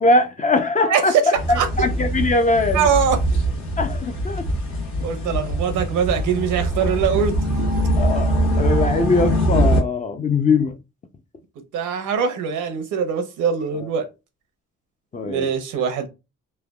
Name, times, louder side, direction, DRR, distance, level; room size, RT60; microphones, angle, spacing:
voice 1, 0.0-1.1 1.8-2.9 3.8-4.5 5.2-5.4 8.0-10.8 15.1-15.5, left 3 dB, 25° left, 0.5 m, -21 dB
voice 2, 0.9-1.9 2.7-3.2 5.0-7.5 11.7-14.1 15.2-16.1, right 7 dB, 85° right, 0.8 m, -22 dB
sound 1, 1.3-9.8, right 1 dB, 65° left, 1.2 m, -22 dB
3.3 x 2.2 x 2.3 m
cardioid pair, 90°, 30 cm